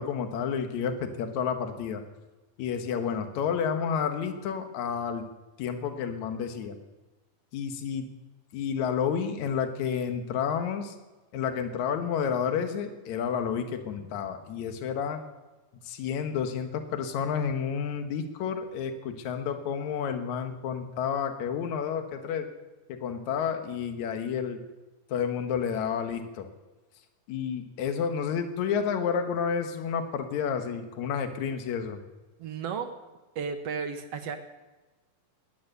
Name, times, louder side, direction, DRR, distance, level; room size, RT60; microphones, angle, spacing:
voice 1, 0.0-2.0 2.6-5.3 5.6-6.7 7.5-8.1 8.5-11.0 11.3-15.2 15.8-22.5 22.9-24.6 25.1-26.5 27.3-32.0, left 7 dB, 65° left, 6 dB, 2.5 m, -30 dB
voice 2, 32.4-32.9 33.3-34.4, right 6 dB, 65° right, 7 dB, 1.6 m, -33 dB
20.5 x 9.7 x 6.8 m, 1.2 s
omnidirectional pair, 3.9 m